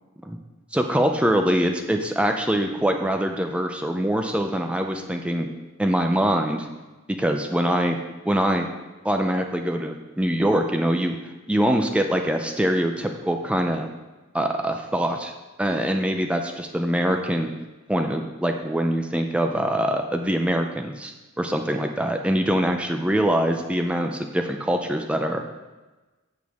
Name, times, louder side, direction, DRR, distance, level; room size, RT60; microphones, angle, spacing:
voice 1, 0.7-5.5 5.8-6.7 7.1-8.0 8.2-8.7 9.0-11.2 11.5-13.9 14.3-15.3 15.6-17.5 17.9-25.4, equal, 5° right, 4 dB, 0.4 m, -23 dB
8.3 x 7.8 x 3.6 m, 1.2 s
head